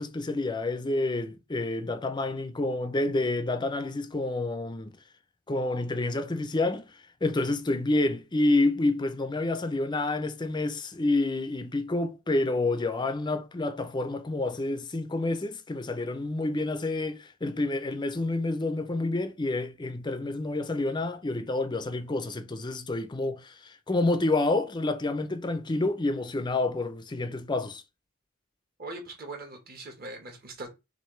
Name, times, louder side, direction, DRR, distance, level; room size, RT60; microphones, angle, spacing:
voice 1, 0.0-5.0 5.5-27.8, left 2 dB, 20° left, 0.5 m, -28 dB
voice 2, 28.8-30.7, right 2 dB, 45° right, 1.4 m, -41 dB
6.1 x 2.6 x 3.2 m
head